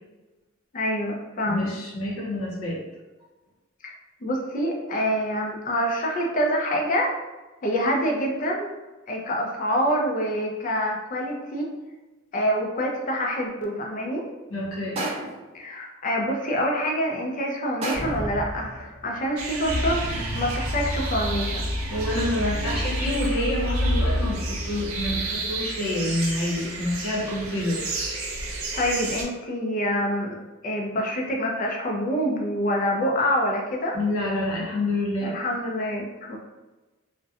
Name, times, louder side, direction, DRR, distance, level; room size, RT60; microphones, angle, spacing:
voice 1, 0.7-1.7 3.8-3.9 4.2-7.1 7.6-8.7 9.1-11.7 12.3-14.2 15.5-20.0 20.3-21.7 28.4-30.4 30.6-34.0 35.2-36.4, equal, 40° left, 0 dB, 0.4 m, -26 dB
voice 2, 1.4-2.8 14.5-15.1 21.9-27.9 33.9-35.4, left 1 dB, 85° left, -4 dB, 0.8 m, -28 dB
sound 1, 15.0-15.5 17.8-18.3, right 2 dB, 30° right, 0.5 m, -30 dB
sound 2, 17.9-19.1 19.6-25.5, left 1 dB, 5° left, 0.9 m, -29 dB
sound 3, 19.4-29.2, right 3 dB, 85° right, 0.5 m, -33 dB
2.6 x 2.1 x 2.4 m, 1.2 s
head